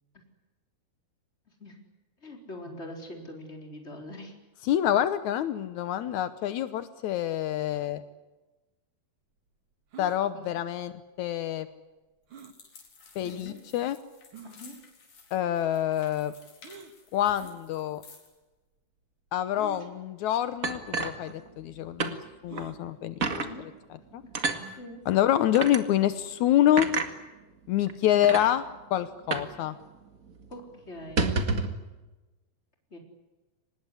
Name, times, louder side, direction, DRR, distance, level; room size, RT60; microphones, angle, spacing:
voice 1, 2.2-4.3 10.3-10.4 13.2-13.6 14.4-14.8 17.4-17.5 23.3-23.7 24.8-25.0 30.5-31.3 32.9-33.0, left 1 dB, 15° left, 3 dB, 4.1 m, -43 dB
voice 2, 4.6-8.0 10.0-11.7 13.1-14.0 15.3-16.3 17.1-18.0 19.3-23.1 24.1-24.2 25.0-26.9 27.7-28.6 28.9-29.8, left 11 dB, 85° left, 12 dB, 1.6 m, -26 dB
sound 1, 9.9-10.2 12.3-12.6 13.4-13.5 14.3-14.6 16.6-16.9 18.0-18.1 19.5-19.9 20.8-20.9 21.2-21.3 22.5-22.8 24.5-24.9, right 5 dB, 45° right, 1.7 m, -46 dB
sound 2, 12.3-18.4, left 5 dB, 50° left, 5.4 m, -54 dB
sound 3, 20.6-21.7 22.0-22.2 22.6-22.7 23.2-23.5 24.3-24.6 25.5-25.8 26.8-27.1 27.9-28.0 28.2-28.5 29.3-29.6 29.8-29.9 30.3-30.5 31.0-31.8, right 3 dB, 65° right, 0.8 m, -29 dB
25.0 x 20.0 x 9.9 m, 1.1 s
omnidirectional pair, 4.7 m